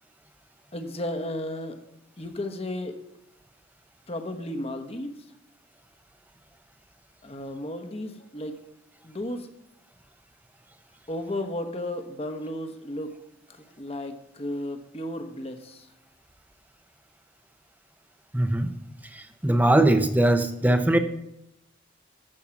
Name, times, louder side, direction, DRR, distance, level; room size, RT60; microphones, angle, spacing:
voice 1, 0.7-1.8 2.2-3.0 4.1-5.3 7.2-8.6 9.0-9.5 11.1-13.1 13.5-15.9, left 1 dB, 30° left, 6 dB, 1.1 m, -34 dB
voice 2, 18.3-18.7 19.1-21.0, right 1 dB, 10° right, 8 dB, 0.7 m, -21 dB
14.0 x 5.7 x 5.9 m, 0.82 s
head